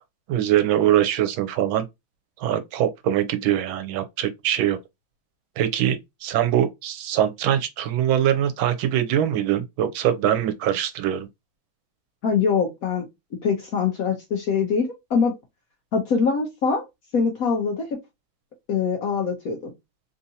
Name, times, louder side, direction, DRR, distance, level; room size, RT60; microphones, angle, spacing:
voice 1, 0.3-1.8 2.4-4.8 5.6-11.3, right 11 dB, 90° right, 1.4 m, -23 dB
voice 2, 12.2-13.1 13.4-15.3 15.9-16.9 17.1-18.0 18.7-19.7, left 5 dB, 65° left, 0.9 m, -23 dB
3.6 x 2.6 x 2.7 m
omnidirectional pair, 2.2 m